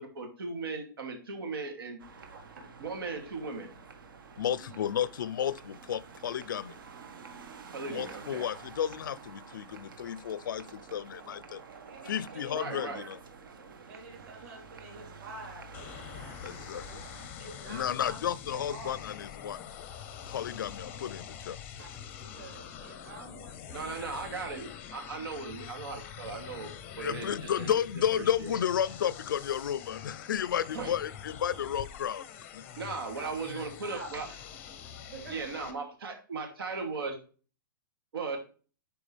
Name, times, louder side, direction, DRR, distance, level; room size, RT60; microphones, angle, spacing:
voice 1, 0.0-2.0 2.8-3.7 7.7-8.5 12.5-13.0 23.7-26.7 27.0-27.7 28.1-28.6 30.7-30.9 32.7-34.3 35.3-37.2 38.1-38.4, right 4 dB, 85° right, 2.7 m, -37 dB
sound 1, 2.0-17.3, right 5 dB, 70° right, 1.4 m, -49 dB
voice 2, 2.3-2.8 4.5-4.8 7.8-8.2 11.9-13.1 13.9-19.0 21.8-24.3 32.7-34.1 35.1-35.6, right 3 dB, 45° right, 3.8 m, -49 dB
voice 3, 4.4-6.8 7.9-11.6 12.0-13.2 16.4-16.9 17.7-19.9 20.3-21.6 27.0-32.2 32.5-32.6, left 9 dB, 60° left, 0.5 m, -32 dB
sound 2, 15.7-35.7, left 8 dB, 15° left, 0.6 m, -45 dB
11.5 x 4.7 x 3.4 m
hypercardioid pair, 180°, 12 cm